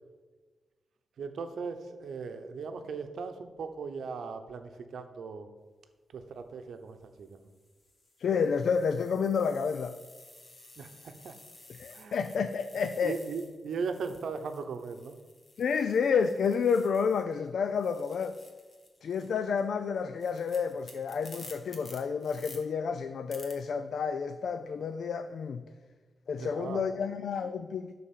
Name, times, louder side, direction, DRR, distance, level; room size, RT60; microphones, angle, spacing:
voice 1, 1.2-5.5 6.1-7.4 10.8-11.3 11.9-12.2 13.0-15.1 26.4-26.8, right 5 dB, 75° right, 8 dB, 0.9 m, -38 dB
sound 1, 6.2-6.5 7.2-17.4 17.7-22.6 23.3-23.5, left 2 dB, 35° left, 1.6 m, -54 dB
voice 2, 8.2-10.0 11.8-13.2 15.6-18.4 19.0-25.6 26.3-27.9, left 6 dB, 70° left, 10 dB, 0.4 m, -30 dB
11.0 x 4.2 x 7.4 m, 1.4 s
wide cardioid pair, 150°, 0 cm